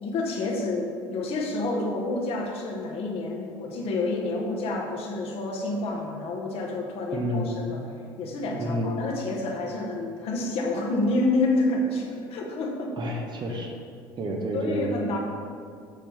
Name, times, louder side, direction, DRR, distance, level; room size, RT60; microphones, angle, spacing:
voice 1, 0.0-7.8 8.2-13.0 14.5-15.2, left 2 dB, 55° left, -1 dB, 1.3 m, -28 dB
voice 2, 7.1-7.5 8.6-8.9 13.0-13.7 14.2-15.2, right 1 dB, 40° right, 1 dB, 1.2 m, -29 dB
6.7 x 6.3 x 3.5 m, 2.2 s
hypercardioid pair, 65°, 12 cm